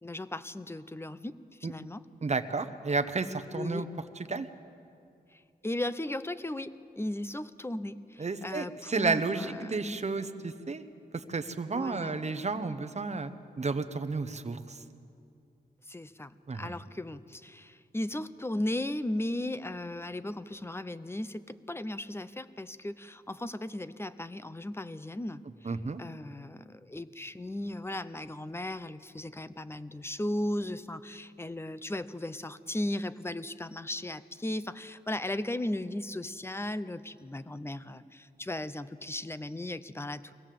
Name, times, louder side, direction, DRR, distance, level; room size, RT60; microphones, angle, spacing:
voice 1, 0.0-2.1 3.5-3.9 5.3-10.0 11.7-12.2 15.9-25.4 26.0-40.3, left 1 dB, 15° left, 14 dB, 0.6 m, -36 dB
voice 2, 2.2-3.9 4.3-4.5 8.2-10.8 11.1-13.3 13.6-14.8 16.5-16.7 25.6-26.0, right 4 dB, 40° right, 10 dB, 1.0 m, -32 dB
23.0 x 17.0 x 7.7 m, 2.6 s
wide cardioid pair, 100°, 17 cm